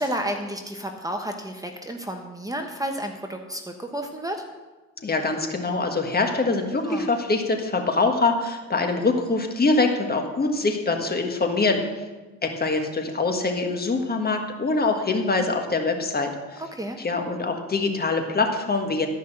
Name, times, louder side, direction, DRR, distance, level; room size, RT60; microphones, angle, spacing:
voice 1, 0.0-4.4 6.9-7.1 16.7-17.0, right 1 dB, 10° right, 4 dB, 1.1 m, -31 dB
voice 2, 5.0-11.8 12.4-16.6 17.0-19.1, left 3 dB, 30° left, 4 dB, 1.6 m, -24 dB
13.0 x 5.6 x 7.8 m, 1.2 s
cardioid pair, 90°, 30 cm